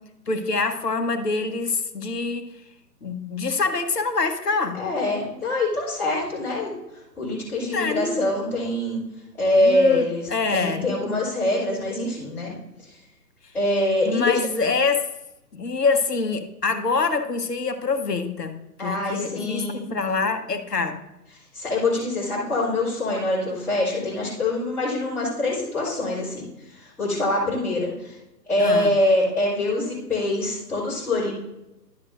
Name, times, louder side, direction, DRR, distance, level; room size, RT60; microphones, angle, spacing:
voice 1, 0.3-2.5 3.0-4.8 7.7-8.3 9.6-10.1 10.3-10.9 14.1-15.1 15.5-21.0 28.6-28.9, left 4 dB, 70° left, 8 dB, 1.1 m, -25 dB
voice 2, 4.7-9.0 9.4-12.5 12.8-13.0 13.5-14.4 18.8-19.9 21.5-28.2 28.5-31.3, left 1 dB, 5° left, -14 dB, 3.1 m, -24 dB
11.5 x 7.3 x 2.6 m, 0.93 s
figure-of-eight pair, 135°, 49 cm